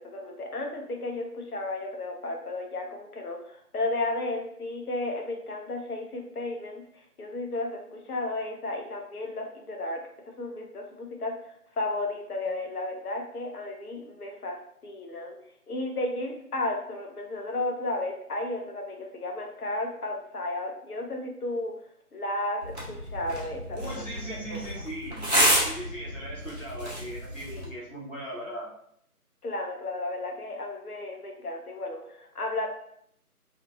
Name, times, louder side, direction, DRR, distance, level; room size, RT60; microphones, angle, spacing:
voice 1, 0.0-10.0 10.3-14.6 14.8-15.4 15.7-21.7 22.1-24.0 24.5-24.6 27.5-27.7 29.4-32.7, left 2 dB, 70° left, 2 dB, 0.7 m, -33 dB
sound 1, 22.6-27.6, equal, 45° right, 0.7 m, -29 dB
voice 2, 23.7-25.2 25.6-28.7, right 1 dB, 55° left, -8 dB, 1.1 m, -39 dB
2.6 x 2.6 x 2.3 m, 0.70 s
figure-of-eight pair, 180°, 46 cm